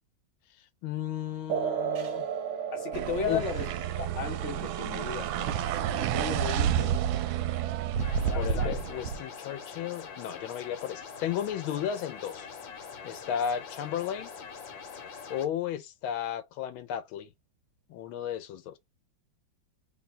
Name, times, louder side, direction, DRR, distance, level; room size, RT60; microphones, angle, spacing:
voice 1, 0.8-2.3 3.3-3.4 8.4-12.5 13.0-14.3 15.3-17.3 17.9-18.8, left 9 dB, 90° left, 1.5 m, -34 dB
sound 1, 1.5-8.5, right 8 dB, 65° right, 1.2 m, -37 dB
voice 2, 2.7-3.7 4.0-7.2 8.2-8.8, left 6 dB, 50° left, 1.0 m, -36 dB
sound 2, 2.9-9.2, right 9 dB, 80° right, 1.3 m, -30 dB
sound 3, 8.0-15.4, left 5 dB, 70° left, 1.6 m, -44 dB
3.4 x 2.2 x 4.2 m
omnidirectional pair, 2.2 m